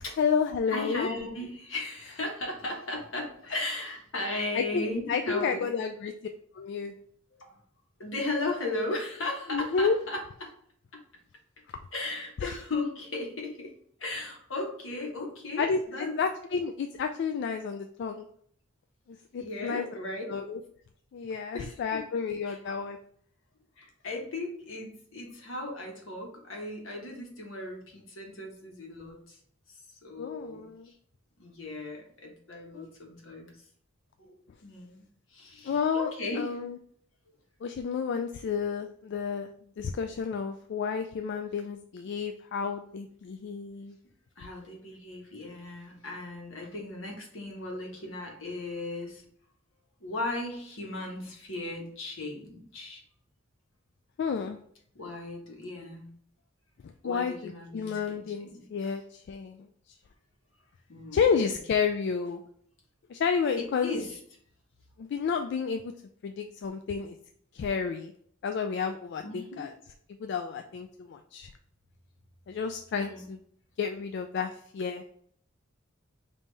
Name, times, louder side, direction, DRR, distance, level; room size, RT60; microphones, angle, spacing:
voice 1, 0.0-1.1 4.5-6.1 6.5-7.0 9.5-10.0 12.4-12.6 15.6-18.3 19.3-19.9 20.3-20.6 21.1-23.0 30.2-30.9 32.7-32.9 35.6-36.8 37.6-39.5 39.8-44.0 54.2-54.6 56.8-59.7 61.1-62.4 63.1-64.0 65.0-65.9 66.2-67.2 67.5-68.1 68.4-69.7 70.2-71.5 72.5-73.4 73.8-75.1, left 6 dB, 60° left, 6 dB, 0.3 m, -31 dB
voice 2, 0.7-5.9 7.3-7.5 8.0-10.5 10.9-11.0 11.9-13.7 14.0-16.2 19.4-20.2 21.5-22.0 22.5-22.6 23.8-29.4 30.0-30.9 31.4-33.6 34.2-34.4 34.6-35.0 35.3-36.5 44.4-49.2 50.0-53.0 54.9-56.1 57.0-58.6 60.9-61.2 63.6-64.2 69.2-69.6 73.0-73.2, left 2 dB, 80° left, 1 dB, 1.3 m, -36 dB
5.2 x 2.7 x 3.3 m, 0.64 s
head